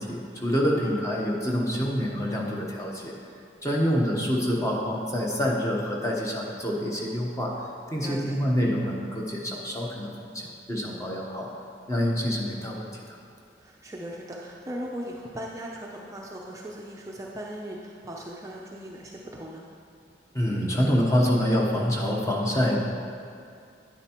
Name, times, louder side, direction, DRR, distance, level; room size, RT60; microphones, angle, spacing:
voice 1, 0.0-3.1 3.6-7.5 7.9-11.5 11.9-13.2 20.3-22.8, equal, 15° left, -2 dB, 1.0 m, -26 dB
voice 2, 8.0-8.4 13.6-19.7, equal, 15° right, -2 dB, 0.5 m, -38 dB
9.8 x 9.0 x 3.0 m, 2.5 s
head